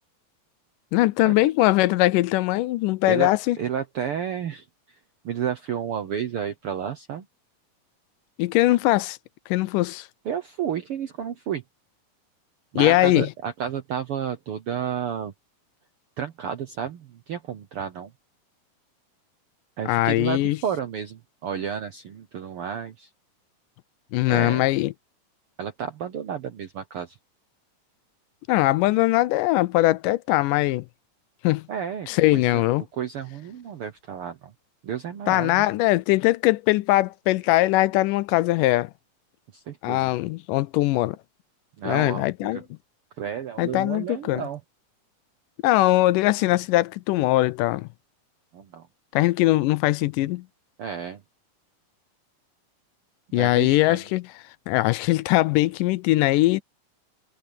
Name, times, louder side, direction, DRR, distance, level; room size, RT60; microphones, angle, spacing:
voice 1, 0.9-3.6 8.4-9.2 9.5-10.1 12.8-13.3 19.9-20.6 24.1-24.9 28.5-30.9 31.4-31.7 32.1-32.8 35.3-38.9 39.8-41.2 41.8-42.6 43.6-44.5 45.6-47.9 49.1-50.4 53.3-54.3 54.7-56.6, left 18 dB, 80° left, 2.1 m, -21 dB
voice 2, 3.6-4.6 5.2-7.2 10.2-11.6 12.7-15.3 16.2-18.1 19.8-23.1 24.3-24.6 25.6-27.2 31.7-34.5 34.8-35.7 39.5-40.1 41.8-42.6 43.2-44.6 48.5-48.9 50.8-51.2 53.3-54.0, right 8 dB, 70° right, 1.3 m, -31 dB
omnidirectional pair, 3.9 m